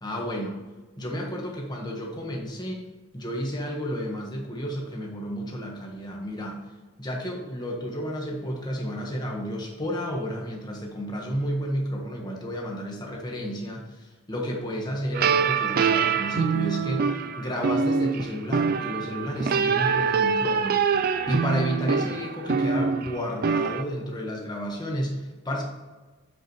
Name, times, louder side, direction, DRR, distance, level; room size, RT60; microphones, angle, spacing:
voice 1, 0.0-0.6 1.0-2.8 3.1-25.6, equal, 20° left, -1 dB, 1.4 m, -32 dB
sound 1, 15.1-23.8, right 6 dB, 45° right, 0.3 m, -24 dB
7.8 x 7.6 x 3.1 m, 1.2 s
head